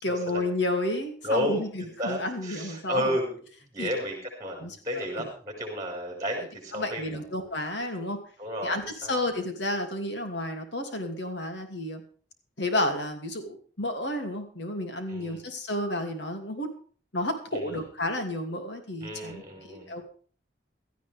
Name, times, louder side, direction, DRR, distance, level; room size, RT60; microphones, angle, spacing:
voice 1, 0.0-3.2 3.8-3.9 4.6-5.2 6.7-8.2 8.6-12.0 12.6-16.7 17.1-20.0, left 1 dB, 65° left, 5 dB, 2.7 m, -31 dB
voice 2, 1.2-3.4 3.7-7.2 8.4-8.8 9.0-9.1 15.1-15.4 17.5-17.8 19.0-19.9, equal, 20° right, 1 dB, 5.2 m, -32 dB
17.0 x 13.0 x 3.5 m, 0.43 s
head